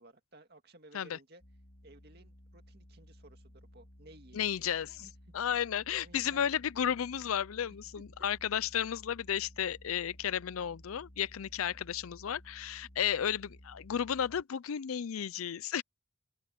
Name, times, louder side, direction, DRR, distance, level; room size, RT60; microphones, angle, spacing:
voice 1, 0.0-1.4 1.8-4.7 5.0-5.1 5.4-5.5 5.9-6.5, right 2 dB, 50° right, 2.2 m, -57 dB
sound 1, 1.4-14.4, equal, 60° left, 4.6 m, -56 dB
voice 2, 4.3-5.1 5.3-15.8, left 9 dB, 90° left, 0.5 m, -33 dB
open air
head